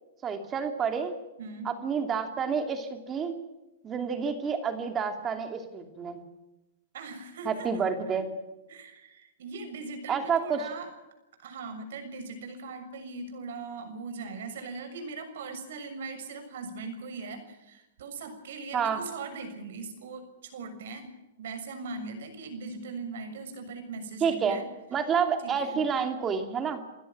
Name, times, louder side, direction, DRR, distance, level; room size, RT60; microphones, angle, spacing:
voice 1, 0.2-1.1 1.6-3.4 3.8-6.2 7.4-8.3 10.1-10.6 18.7-19.0 24.2-24.6 24.9-26.8, right 6 dB, 20° right, 6 dB, 2.8 m, -29 dB
voice 2, 1.4-1.7 6.9-7.7 8.0-8.3 8.7-10.9 11.4-21.1 21.4-24.6 25.4-25.8, right 4 dB, 70° right, 8 dB, 6.6 m, -40 dB
28.5 x 16.5 x 6.1 m, 0.99 s
hypercardioid pair, 145°, 0 cm